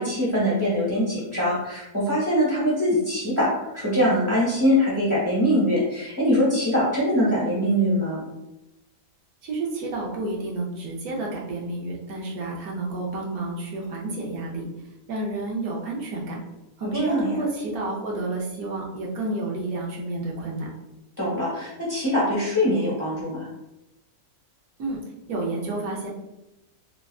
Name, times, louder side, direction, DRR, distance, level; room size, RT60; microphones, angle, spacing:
voice 1, 0.0-8.2 16.8-17.4 21.2-23.5, equal, 25° left, -7 dB, 0.9 m, -23 dB
voice 2, 9.4-14.7 15.1-16.4 16.8-20.7 24.8-25.0 25.3-26.1, right 2 dB, 75° right, -2 dB, 1.2 m, -30 dB
3.4 x 2.4 x 2.3 m, 0.93 s
omnidirectional pair, 1.6 m